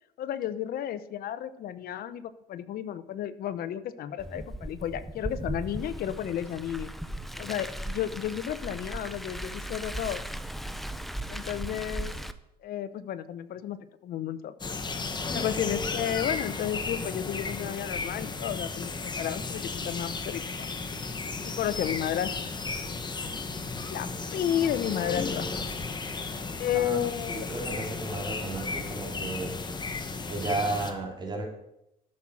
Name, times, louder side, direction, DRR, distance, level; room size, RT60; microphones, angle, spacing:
voice 1, 0.2-6.9 7.4-10.2 11.3-12.2 12.6-13.8 14.0-14.5 15.3-20.7 21.4-22.5 23.9-25.5 26.6-27.5, left 10 dB, 65° left, 13 dB, 0.8 m, -32 dB
Car, 4.2-12.3, right 1 dB, ahead, 0.6 m, -37 dB
sound 1, 14.6-30.9, left 4 dB, 25° left, 1.2 m, -34 dB
voice 2, 27.3-29.6 30.3-31.5, right 2 dB, 25° right, 1 dB, 2.9 m, -33 dB
13.0 x 6.3 x 5.9 m, 0.84 s
cardioid pair, 110°, 17 cm